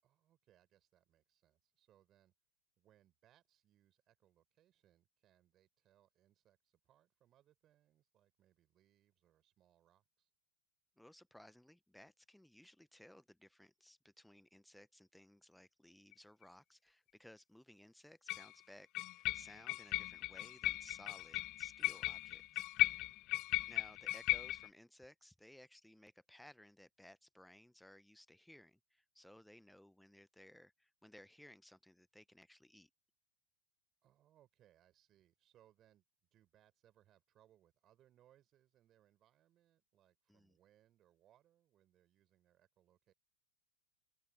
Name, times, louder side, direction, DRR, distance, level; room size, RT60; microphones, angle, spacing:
voice 1, 0.0-2.3 2.8-10.3 23.3-23.7 34.0-36.0 36.3-43.1, right 12 dB, 30° right, 5.4 m, -72 dB
voice 2, 11.0-22.6 23.7-32.9 40.3-40.6, left 1 dB, ahead, 1.2 m, -60 dB
sound 1, 16.1-16.2 18.3-18.5 19.0-24.7, left 19 dB, 40° left, 0.4 m, -37 dB
figure-of-eight pair, 90°, 0 cm